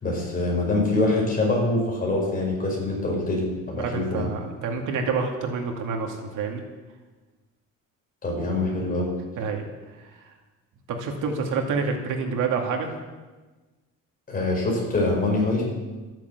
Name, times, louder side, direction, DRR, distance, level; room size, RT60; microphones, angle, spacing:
voice 1, 0.0-4.3 8.2-9.1 14.3-15.6, left 2 dB, 25° left, -1 dB, 5.3 m, -24 dB
voice 2, 3.7-6.6 9.4-9.6 11.0-12.9, right 5 dB, 75° right, 2 dB, 2.3 m, -27 dB
13.0 x 10.5 x 8.0 m, 1.2 s
cardioid pair, 165°, 32 cm